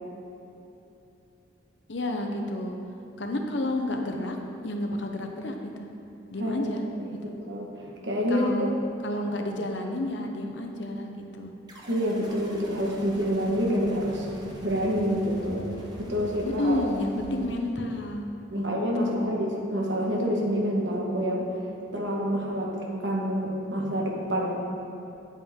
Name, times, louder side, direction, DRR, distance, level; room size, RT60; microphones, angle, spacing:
voice 1, 1.9-2.8 3.2-4.4 4.6-5.7 6.3-6.8 7.2-7.3 8.3-8.7 9.0-11.5 16.4-18.2 18.5-18.7 19.0-19.3, left 1 dB, 65° left, 3 dB, 0.9 m, -30 dB
voice 2, 6.4-8.7 11.9-14.3 14.6-15.6 16.0-16.9 18.5-21.5 21.9-22.7 23.0-24.5, equal, 65° right, -2 dB, 1.4 m, -27 dB
sound 1, 11.7-18.1, equal, 20° right, 1.0 m, -43 dB
9.2 x 8.3 x 3.7 m, 2.9 s
head